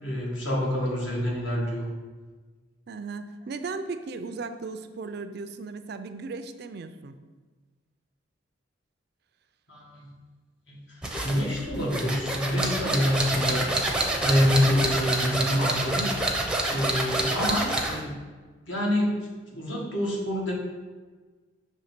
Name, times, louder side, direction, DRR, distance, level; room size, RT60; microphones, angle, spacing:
voice 1, 0.0-1.9 9.7-10.1 10.7-13.7 14.2-16.2 16.7-18.2 18.7-20.5, equal, 65° left, -3 dB, 1.7 m, -27 dB
voice 2, 2.9-7.2, right 4 dB, 50° right, 9 dB, 0.4 m, -36 dB
sound 1, 11.0-18.0, right 1 dB, 5° right, 0.6 m, -27 dB
6.4 x 3.2 x 5.8 m, 1.4 s
head